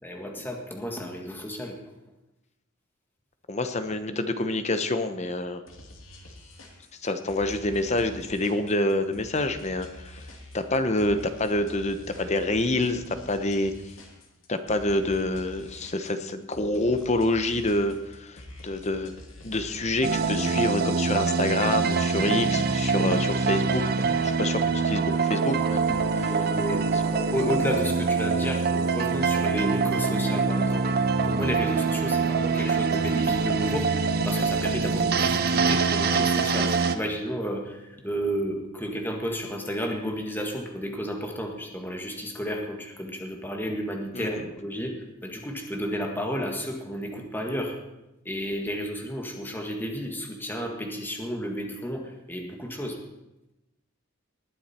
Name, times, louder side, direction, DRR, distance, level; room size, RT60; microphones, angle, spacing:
voice 1, 0.0-1.8 26.1-30.9 31.2-44.9 45.2-47.8 48.3-53.0, equal, 10° left, 2 dB, 1.8 m, -32 dB
voice 2, 3.5-5.6 7.0-10.1 10.5-13.7 14.5-19.1 19.4-25.9 26.2-26.4 44.1-44.4, left 2 dB, 35° left, 9 dB, 0.9 m, -27 dB
sound 1, 5.7-20.4, left 1 dB, 85° left, 2.5 m, -46 dB
sound 2, 20.0-37.0, right 4 dB, 50° right, 0.8 m, -24 dB
19.5 x 9.3 x 4.4 m, 0.94 s
head